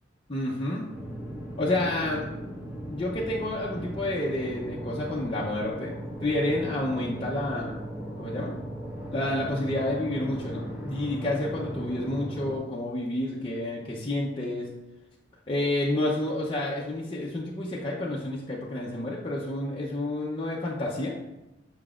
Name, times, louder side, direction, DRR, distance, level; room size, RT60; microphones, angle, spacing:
voice 1, 0.3-0.9 1.6-2.3 2.9-7.9 8.2-8.5 9.1-14.7 15.5-21.2, left 1 dB, 25° left, -4 dB, 0.6 m, -29 dB
sound 1, 0.9-12.6, right 1 dB, 10° right, 1.0 m, -37 dB
6.9 x 5.9 x 2.4 m, 0.94 s
head